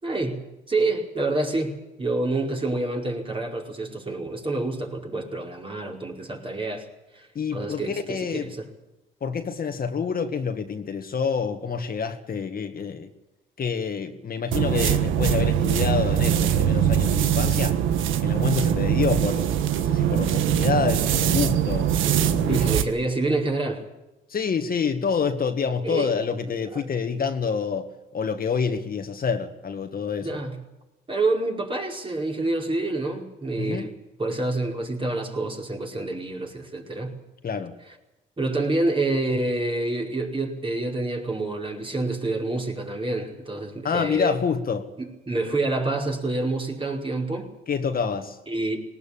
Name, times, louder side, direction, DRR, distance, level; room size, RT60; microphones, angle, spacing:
voice 1, 0.0-6.9 7.1-8.7 22.5-23.8 25.8-26.2 26.7-26.9 30.2-30.6 31.1-33.9 34.2-37.2 38.4-44.4 45.0-47.5 48.5-48.8, right 2 dB, 25° right, 4.9 m, -27 dB
voice 2, 7.4-8.5 9.2-13.1 13.6-17.8 18.2-19.5 19.7-22.7 24.3-27.9 28.1-30.4 33.6-33.9 37.4-37.7 43.8-44.9 47.7-48.4, left 6 dB, 45° left, 2.0 m, -27 dB
sound 1, 14.5-22.9, right 10 dB, 90° right, 1.4 m, -22 dB
19.5 x 19.0 x 8.8 m
cardioid pair, 90°, 20 cm